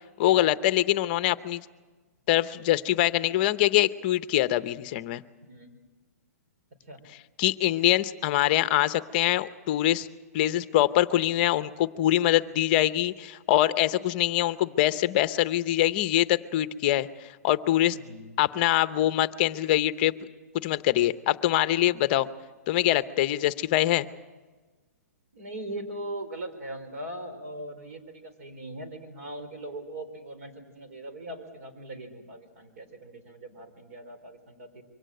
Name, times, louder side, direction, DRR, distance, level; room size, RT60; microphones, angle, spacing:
voice 1, 0.2-1.6 2.3-5.2 7.4-10.1 10.3-18.0 18.4-20.1 20.5-22.3 22.7-24.1, left 14 dB, 35° left, 14 dB, 0.7 m, -24 dB
voice 2, 5.4-5.8 6.9-7.0 17.9-18.3 25.3-34.8, right 1 dB, 55° right, 7 dB, 4.3 m, -40 dB
24.0 x 17.5 x 7.7 m, 1.3 s
hypercardioid pair, 155°, 9 cm